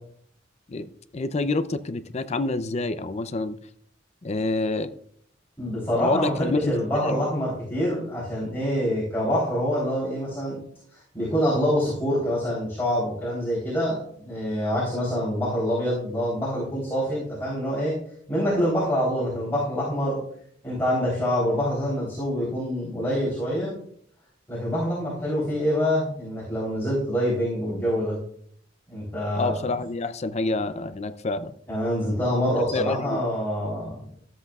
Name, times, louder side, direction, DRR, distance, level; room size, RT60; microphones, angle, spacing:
voice 1, 1.1-3.6 4.2-4.9 5.9-7.2 29.4-31.5 32.7-33.2, left 3 dB, 35° left, 0.5 m, -27 dB
voice 2, 5.6-10.6 10.9-17.9 18.3-20.2 20.6-23.7 24.5-28.2 28.9-29.7 31.7-34.0, equal, 10° left, 3.5 m, -26 dB
13.5 x 7.8 x 2.4 m
head